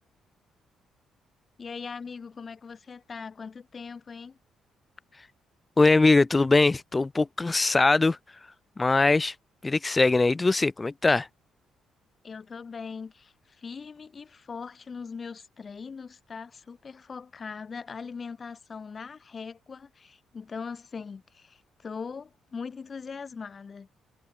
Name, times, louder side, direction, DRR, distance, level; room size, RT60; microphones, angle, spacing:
voice 1, 1.6-4.4 12.2-23.9, left 5 dB, 40° left, 5.4 m, -40 dB
voice 2, 5.8-8.2 8.8-9.3 9.6-11.3, left 3 dB, 20° left, 1.1 m, -21 dB
cardioid pair, 90°, 0 cm